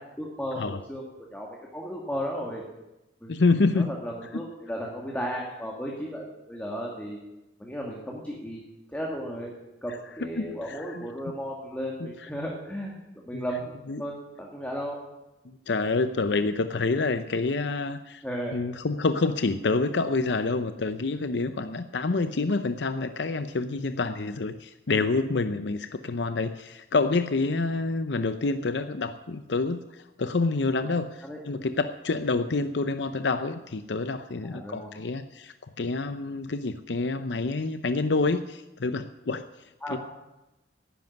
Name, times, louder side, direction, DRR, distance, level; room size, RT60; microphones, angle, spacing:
voice 1, 0.2-1.0 1.3-2.6 3.2-3.3 3.7-7.2 7.6-8.6 8.9-9.5 9.8-12.9 13.3-13.7 14.0-15.0 18.2-18.6 31.2-31.4 34.4-34.9 39.8-40.0, equal, 10° left, -2 dB, 2.1 m, -34 dB
voice 2, 3.3-3.9 10.4-11.1 12.0-12.1 13.3-13.4 13.9-14.0 15.5-18.2 18.5-39.5 39.9-40.0, left 3 dB, 75° left, 10 dB, 0.6 m, -27 dB
11.0 x 10.5 x 9.5 m, 0.99 s
head